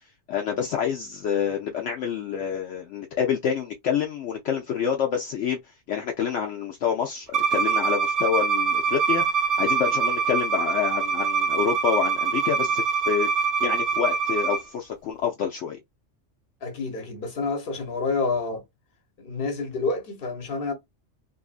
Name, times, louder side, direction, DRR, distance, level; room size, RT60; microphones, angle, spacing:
voice 1, 0.3-5.6 5.9-15.8, left 8 dB, 70° left, 0.9 m, -27 dB
Bowed string instrument, 7.3-14.6, right 6 dB, 75° right, 0.3 m, -24 dB
voice 2, 16.6-18.6 19.2-20.7, left 4 dB, 50° left, 1.1 m, -28 dB
2.7 x 2.6 x 2.4 m
omnidirectional pair, 1.3 m